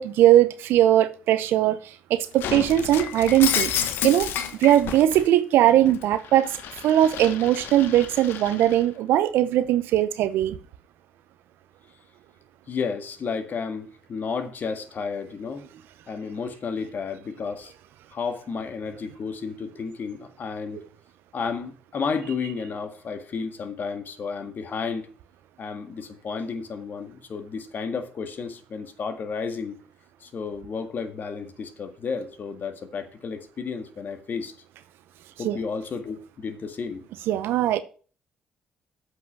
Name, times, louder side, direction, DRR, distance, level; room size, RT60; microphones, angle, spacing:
voice 1, 0.0-1.8 2.1-4.3 4.6-6.6 6.8-10.6 35.4-35.6 37.3-37.8, right 12 dB, 75° right, 0.7 m, -20 dB
Shatter, 2.4-5.3 5.7-8.8, left 9 dB, 70° left, 1.0 m, -31 dB
voice 2, 12.7-15.6 16.1-17.7 18.1-20.8 21.3-25.1 25.6-29.8 30.2-34.5 35.4-37.1, left 5 dB, 55° left, 1.7 m, -32 dB
8.1 x 5.6 x 7.3 m
hypercardioid pair, 50°, 4 cm